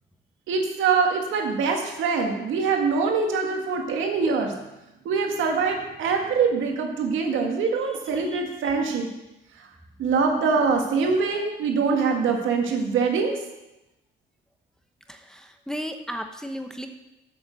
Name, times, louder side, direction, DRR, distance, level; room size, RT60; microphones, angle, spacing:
voice 1, 0.5-4.5 5.1-9.1 10.0-13.3, right 5 dB, 80° right, 2 dB, 1.9 m, -24 dB
voice 2, 15.1-16.9, equal, 5° left, 5 dB, 1.0 m, -34 dB
8.0 x 7.2 x 6.6 m, 0.95 s
cardioid pair, 90°, 20 cm